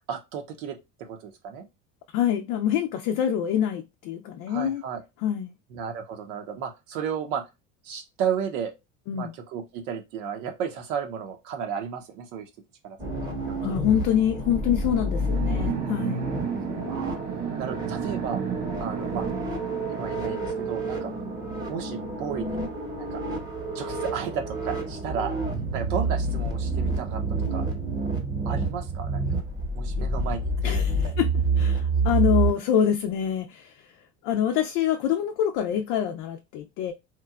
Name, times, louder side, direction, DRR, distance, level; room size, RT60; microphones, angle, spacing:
voice 1, 0.1-1.7 4.5-5.0 5.7-7.5 7.8-8.7 9.1-12.5 12.8-13.9 16.9-17.2 17.6-18.4 18.8-19.2 19.9-21.1 21.7-22.6 22.9-23.2 23.7-25.3 25.7-27.2 27.5-27.7 28.4-29.2 29.7-31.2, right 7 dB, 80° right, 0.7 m, -33 dB
voice 2, 2.1-4.8 5.2-5.5 9.1-9.3 13.6-16.3 30.0-30.1 30.6-33.9 34.2-36.9, left 9 dB, 65° left, 0.5 m, -26 dB
sound 1, 13.0-32.5, right 2 dB, 10° right, 0.9 m, -28 dB
sound 2, 15.1-23.3, right 9 dB, 45° right, 0.5 m, -34 dB
2.9 x 2.2 x 2.3 m
supercardioid pair, 90°, 38 cm